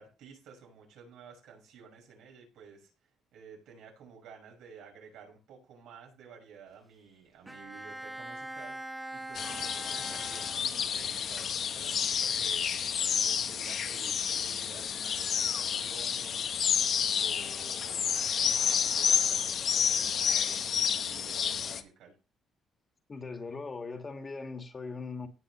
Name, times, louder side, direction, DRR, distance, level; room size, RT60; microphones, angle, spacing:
voice 1, 0.0-12.8 13.2-16.6 17.2-22.1, right 5 dB, 90° right, 6.4 m, -52 dB
Bowed string instrument, 7.5-11.1, right 1 dB, 10° right, 1.2 m, -43 dB
sound 1, 9.3-21.8, left 7 dB, 65° left, 1.3 m, -30 dB
voice 2, 23.1-25.3, left 4 dB, 35° left, 2.3 m, -39 dB
18.0 x 6.7 x 3.4 m
cardioid pair, 90°, 0 cm